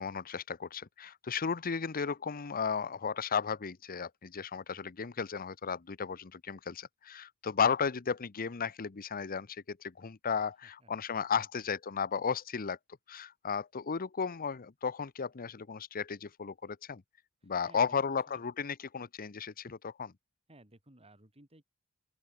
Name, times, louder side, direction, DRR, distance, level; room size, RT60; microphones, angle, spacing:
voice 1, 0.0-12.8 13.1-17.0 17.4-20.1, left 6 dB, 40° left, 0.7 m, -34 dB
voice 2, 10.8-11.7 17.4-18.4 20.5-21.6, right 1 dB, 25° right, 5.7 m, -60 dB
open air
head